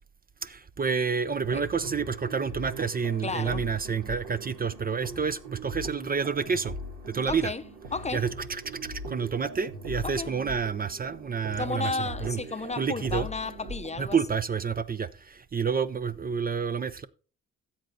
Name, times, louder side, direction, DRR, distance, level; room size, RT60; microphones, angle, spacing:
voice 1, 0.4-6.8 7.1-7.5 8.1-12.4 12.8-13.3 14.0-17.1, right 6 dB, 30° right, 0.6 m, -29 dB
sound 1, 1.4-14.2, right 1 dB, 80° right, 4.3 m, -41 dB
voice 2, 3.2-3.6 7.3-7.6 7.9-8.3 10.0-10.3 11.6-14.2, left 4 dB, 20° left, 0.7 m, -33 dB
13.5 x 7.8 x 4.0 m
cardioid pair, 90°, 30 cm